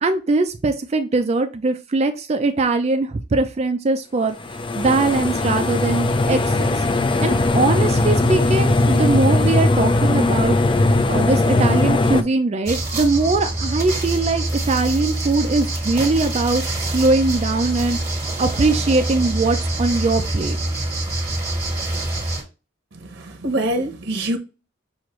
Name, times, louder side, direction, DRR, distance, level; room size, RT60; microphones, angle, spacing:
voice 1, 0.0-6.9 7.2-20.6, right 3 dB, 35° right, 0.4 m, -21 dB
sound 1, 4.4-12.2, left 2 dB, 25° left, 0.4 m, -19 dB
sound 2, 12.6-22.4, right 1 dB, 15° right, 1.9 m, -25 dB
voice 2, 22.9-24.4, right 1 dB, 90° right, 0.8 m, -25 dB
6.3 x 2.5 x 3.0 m
head